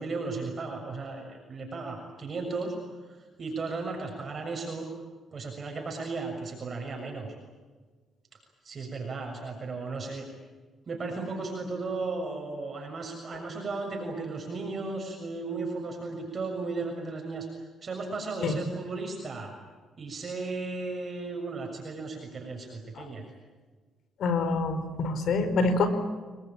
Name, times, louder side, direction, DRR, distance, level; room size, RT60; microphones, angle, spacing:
voice 1, 0.0-2.8 3.1-4.9 5.3-7.3 8.6-10.3 10.9-17.5 17.8-19.5 20.0-23.2, right 3 dB, 40° right, 2 dB, 6.9 m, -35 dB
voice 2, 24.2-25.9, left 3 dB, 70° left, 10 dB, 5.0 m, -26 dB
27.5 x 21.5 x 9.0 m, 1.4 s
cardioid pair, 90°, 0 cm